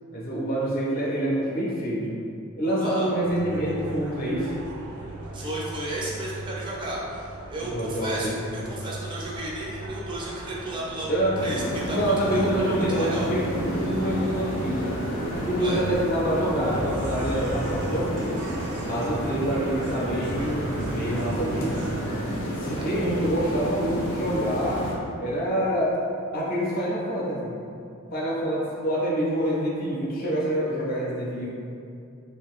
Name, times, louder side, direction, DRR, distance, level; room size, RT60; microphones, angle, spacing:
voice 1, 0.1-2.2 2.6-4.5 7.6-8.3 11.1-11.4 11.9-14.9 15.4-18.4 18.8-21.9 22.6-24.8 25.2-26.0 26.3-27.6 28.1-31.5, equal, 40° left, -5 dB, 0.5 m, -26 dB
sound 1, 3.2-22.0, right 2 dB, 85° right, 0.5 m, -37 dB
voice 2, 5.3-11.1 11.4-12.5 12.9-13.3 15.6-15.8 22.7-22.8, right 1 dB, 20° right, -4 dB, 0.3 m, -33 dB
sound 2, 11.3-24.9, equal, 90° left, 0.6 m, -31 dB
2.4 x 2.4 x 3.5 m, 2.5 s
head